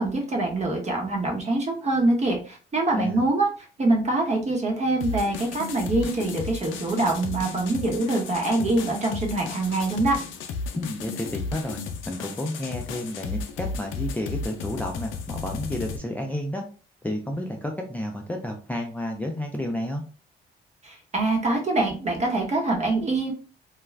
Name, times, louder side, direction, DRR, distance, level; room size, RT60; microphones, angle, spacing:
voice 1, 0.0-3.5 3.8-10.2 20.8-23.3, right 2 dB, 35° right, 1 dB, 0.9 m, -24 dB
voice 2, 2.9-3.2 10.7-16.6 17.0-20.0, left 1 dB, 10° left, 1 dB, 0.4 m, -31 dB
sound 1, 5.0-16.0, left 4 dB, 80° left, 0.5 m, -34 dB
2.4 x 2.2 x 3.2 m, 0.37 s
cardioid pair, 90°, 20 cm